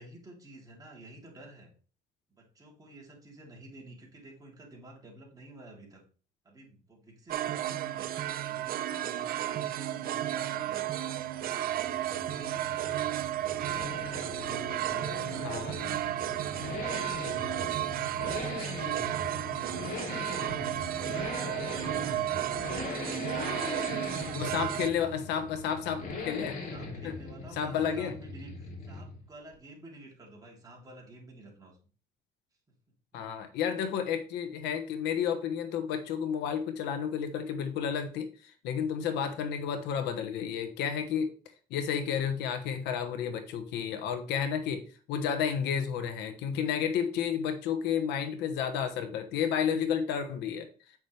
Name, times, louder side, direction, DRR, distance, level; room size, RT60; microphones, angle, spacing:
voice 1, 0.0-1.7 2.3-6.0 6.4-8.1 8.4-10.9 11.3-13.0 14.4-20.6 21.0-23.7 25.9-26.2 26.7-31.8, right 1 dB, 20° right, -2 dB, 3.4 m, -51 dB
sound 1, 7.3-24.9, right 12 dB, 60° right, 0.6 m, -33 dB
Accelerating revving vroom, 11.1-29.3 29.5-29.6, left 3 dB, 50° left, 2.8 m, -40 dB
voice 2, 15.4-15.7 24.3-26.6 27.0-27.1 27.6-28.1 33.1-41.3 41.7-44.8 45.1-50.7, left 8 dB, 90° left, 8 dB, 1.2 m, -31 dB
8.5 x 6.1 x 3.3 m, 0.38 s
cardioid pair, 110°, 17 cm